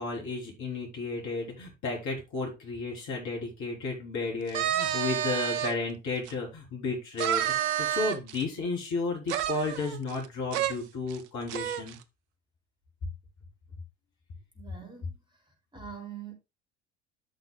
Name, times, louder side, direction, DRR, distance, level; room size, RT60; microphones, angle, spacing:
voice 1, 0.0-12.0, left 3 dB, 50° left, 3.5 m, -33 dB
sound 1, 4.5-5.7 6.3-6.4 7.2-8.4 9.3-10.3 10.5-10.7 11.1-11.2 11.5-11.9, right 10 dB, 60° right, 0.8 m, -29 dB
voice 2, 14.6-15.2 15.7-16.3, right 7 dB, 10° right, 3.4 m, -43 dB
13.5 x 5.9 x 2.2 m
figure-of-eight pair, 65°, 37 cm